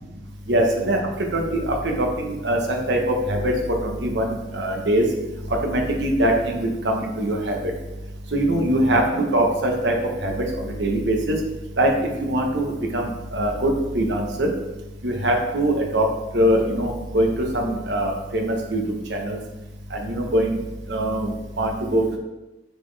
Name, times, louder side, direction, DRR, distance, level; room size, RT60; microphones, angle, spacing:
voice 1, 0.5-1.0 1.3-3.0 3.3-3.5 3.8-5.0 5.6-7.7 8.3-9.9 10.2-10.4 10.8-11.3 11.8-11.9 12.2-14.5 15.0-16.0 16.3-18.8 19.1-19.4 19.9-20.6 20.9-22.0, right 1 dB, 80° right, 1 dB, 1.1 m, -22 dB
9.3 x 4.1 x 3.4 m, 1.0 s
head